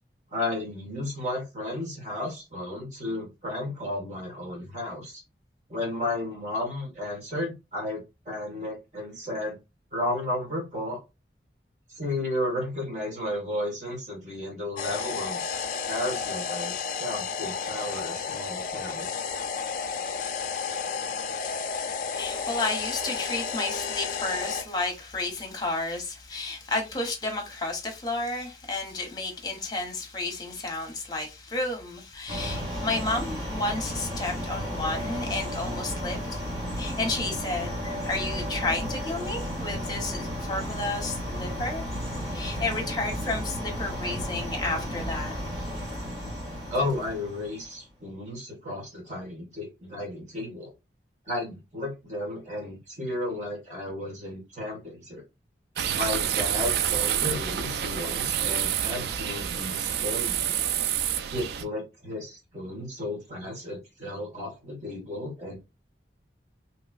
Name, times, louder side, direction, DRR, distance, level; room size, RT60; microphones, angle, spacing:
voice 1, 0.3-5.2 5.7-9.6 9.9-11.0 11.9-15.4 15.9-16.7 17.0-19.1 46.7-50.7 51.3-55.2 55.9-60.6 61.3-65.6, left 1 dB, 40° right, 1.6 m, -33 dB
sound 1, 14.8-24.6, left 6 dB, 45° left, 0.4 m, -32 dB
voice 2, 22.2-36.4 36.7-41.8 42.3-45.4, left 2 dB, 25° left, 0.9 m, -32 dB
sound 2, 32.3-47.8, equal, 20° right, 1.9 m, -33 dB
sound 3, 55.8-61.6, right 9 dB, 60° right, 0.3 m, -28 dB
3.0 x 2.9 x 2.4 m
head